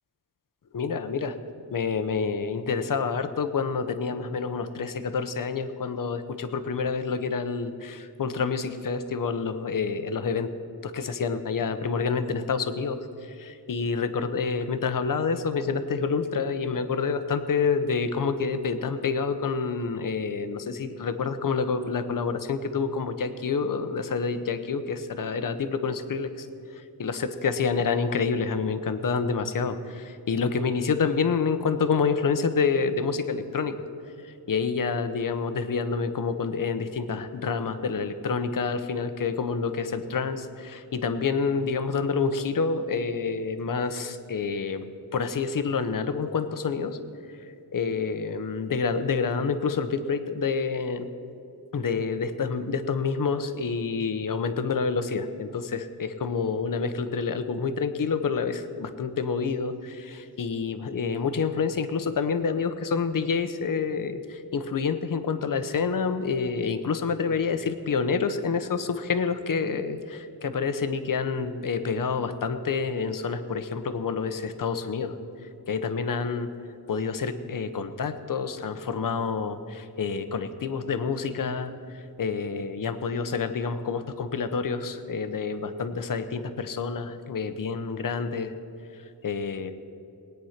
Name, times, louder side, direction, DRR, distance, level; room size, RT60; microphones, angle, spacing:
voice 1, 0.7-1.4 1.7-10.5 10.8-33.8 34.2-44.9 45.1-47.0 47.3-51.1 51.7-75.2 75.4-76.5 76.9-88.5 88.9-89.7, left 5 dB, 50° left, 10 dB, 0.9 m, -28 dB
20.5 x 9.3 x 5.8 m, 2.8 s
wide cardioid pair, 140°, 41 cm